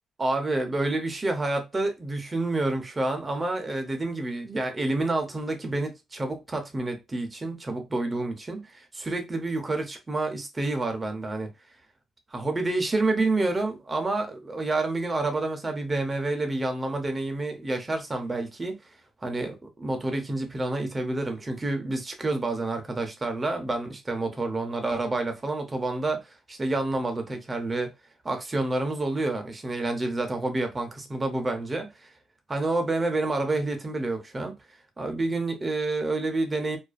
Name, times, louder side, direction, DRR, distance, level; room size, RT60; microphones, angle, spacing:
voice 1, 0.2-11.5 12.3-18.8 19.2-27.9 28.2-32.1 32.5-34.5 35.0-36.8, right 2 dB, 25° right, 0.5 m, -28 dB
2.4 x 2.3 x 2.3 m
cardioid pair, 90°, 0 cm